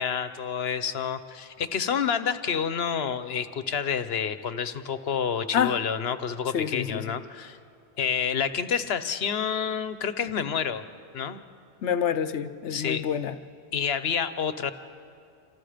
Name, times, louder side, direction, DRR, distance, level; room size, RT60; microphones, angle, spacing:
voice 1, 0.0-7.6 8.0-10.8 11.1-11.4 12.7-13.0 13.7-14.7, left 7 dB, 65° left, 12 dB, 1.2 m, -28 dB
voice 2, 6.5-7.2 11.8-13.3, left 8 dB, 90° left, 12 dB, 1.1 m, -27 dB
29.0 x 26.5 x 5.1 m, 2.5 s
omnidirectional pair, 1.1 m